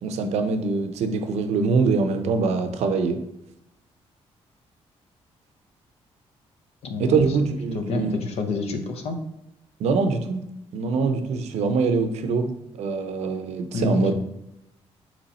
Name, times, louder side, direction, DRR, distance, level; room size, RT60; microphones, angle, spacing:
voice 1, 0.0-3.2 7.0-8.1 9.8-10.4 10.7-12.5 12.8-14.1, right 4 dB, 90° right, 7 dB, 0.6 m, -23 dB
voice 2, 6.8-7.3 7.7-9.2 13.7-14.1, left 3 dB, 70° left, 5 dB, 0.7 m, -28 dB
4.2 x 3.0 x 4.1 m, 0.84 s
cardioid pair, 120°, 11 cm